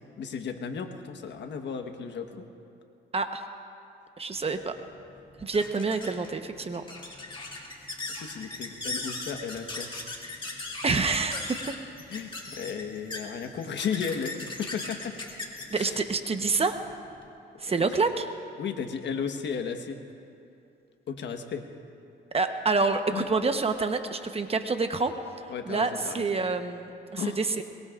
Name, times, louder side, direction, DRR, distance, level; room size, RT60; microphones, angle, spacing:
voice 1, 0.2-2.4 8.1-9.9 12.1-15.1 15.7-16.0 17.8-17.9 18.6-20.0 21.1-21.6 23.1-23.3 25.5-26.4 27.2-27.4, left 6 dB, 65° left, 6 dB, 1.3 m, -34 dB
voice 2, 3.1-3.4 4.2-4.7 5.4-6.8 7.6-7.7 10.8-11.7 15.7-16.8 17.6-18.3 22.3-25.1 25.7-27.6, right 4 dB, 30° right, 7 dB, 1.0 m, -27 dB
sound 1, 4.4-17.3, left 2 dB, 25° left, 2.6 m, -39 dB
22.5 x 22.0 x 2.5 m, 2.7 s
cardioid pair, 90°, 20 cm